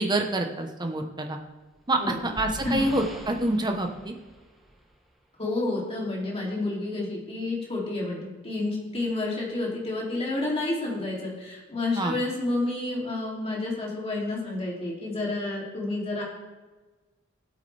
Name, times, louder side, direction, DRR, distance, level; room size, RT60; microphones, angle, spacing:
voice 1, 0.0-1.4 1.9-4.1 12.0-12.1, right 2 dB, 20° right, 3 dB, 1.1 m, -27 dB
sound 1, 1.5-5.2, equal, ahead, 1.3 m, -43 dB
voice 2, 5.4-16.2, left 2 dB, 30° left, -4 dB, 2.8 m, -30 dB
16.5 x 8.4 x 3.4 m, 1.3 s
head